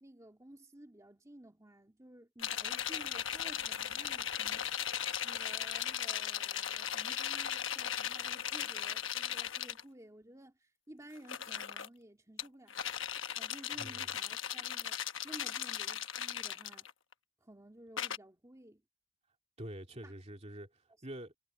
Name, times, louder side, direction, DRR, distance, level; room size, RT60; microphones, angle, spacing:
voice 1, 0.0-4.9 5.2-12.8 13.4-16.9 17.4-18.8 20.0-20.1, right 1 dB, 15° right, 2.3 m, -54 dB
sound 1, 2.4-9.8 11.2-11.9 12.4-17.1 18.0-18.2, left 10 dB, 65° left, 1.2 m, -37 dB
voice 2, 13.8-14.2 19.6-21.3, right 1 dB, 30° right, 2.8 m, -46 dB
head